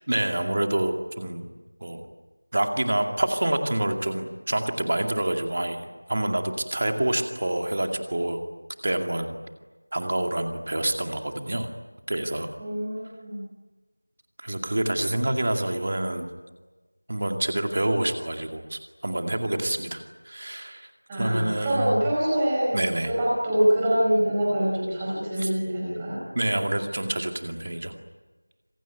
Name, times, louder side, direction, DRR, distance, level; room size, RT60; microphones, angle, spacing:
voice 1, 0.1-1.5 1.8-2.1 2.5-8.4 8.8-9.4 9.9-11.7 12.1-12.5 14.4-16.3 17.1-20.9 21.2-22.1 22.7-23.1 25.4-25.5 26.3-27.9, right 1 dB, 25° right, 5 dB, 2.3 m, -27 dB
voice 2, 12.6-13.4 21.1-22.8 23.0-26.2, equal, 5° right, -6 dB, 5.1 m, -25 dB
26.5 x 23.5 x 9.3 m, 1.2 s
figure-of-eight pair, 175°, 0 cm